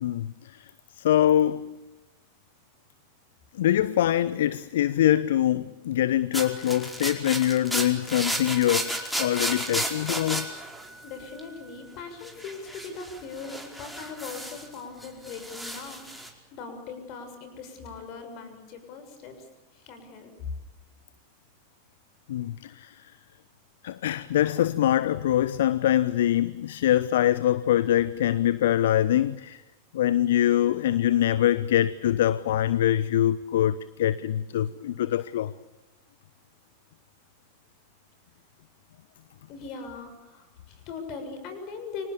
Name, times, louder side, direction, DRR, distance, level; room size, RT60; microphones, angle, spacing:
voice 1, 0.0-0.6 1.0-1.8 3.6-10.5 22.3-23.0 23.8-29.6 29.9-35.5, left 12 dB, 60° left, 0.8 m, -24 dB
sound 1, 6.3-11.6 12.2-14.7 15.0-16.3, right 1 dB, ahead, 4.8 m, -33 dB
voice 2, 11.0-19.5 19.7-20.3 39.5-42.1, left 5 dB, 40° left, 6.8 m, -40 dB
29.5 x 25.5 x 7.1 m
figure-of-eight pair, 90°, 0 cm